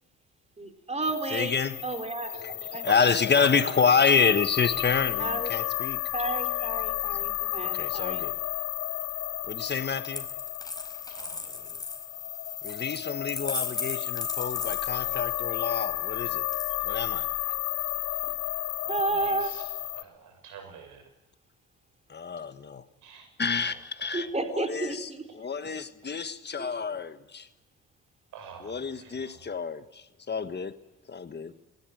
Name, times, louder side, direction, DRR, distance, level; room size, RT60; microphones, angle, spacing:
voice 1, 0.6-1.6 1.8-2.8 5.2-5.5 6.1-8.2 18.2-18.3 18.9-19.5 24.1-25.2 26.6-26.7, right 2 dB, 20° right, 6 dB, 4.1 m, -32 dB
sound 1, 1.0-20.0, left 14 dB, 80° left, 1.0 m, -32 dB
voice 2, 1.3-1.8 2.4-2.5 2.8-6.0 7.7-8.3 9.5-10.3 12.6-16.4 16.8-17.3 22.1-22.8 23.4-27.5 28.6-30.7 31.1-31.5, left 5 dB, 35° left, 10 dB, 1.4 m, -28 dB
voice 3, 2.3-4.0 11.1-11.7 14.6-15.0 18.8-19.7 19.9-21.1 23.0-23.3 23.6-24.3 28.3-29.4, right 6 dB, 90° right, 7 dB, 6.9 m, -45 dB
Coin (dropping), 10.0-15.4 16.5-17.2, left 3 dB, 15° left, 4.8 m, -38 dB
19.5 x 19.5 x 9.3 m, 0.92 s
cardioid pair, 90°, 30 cm